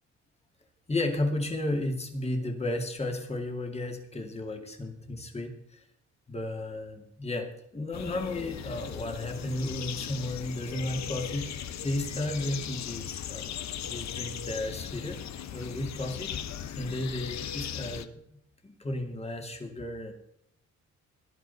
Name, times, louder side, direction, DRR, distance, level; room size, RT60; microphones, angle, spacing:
voice 1, 0.9-5.8 6.3-13.5 13.9-15.2 15.5-18.1 18.6-20.1, left 1 dB, 20° left, 4 dB, 2.5 m, -33 dB
sound 1, 7.9-18.0, left 9 dB, 65° left, 1.0 m, -38 dB
18.0 x 11.0 x 4.2 m, 0.75 s
cardioid pair, 90°, 30 cm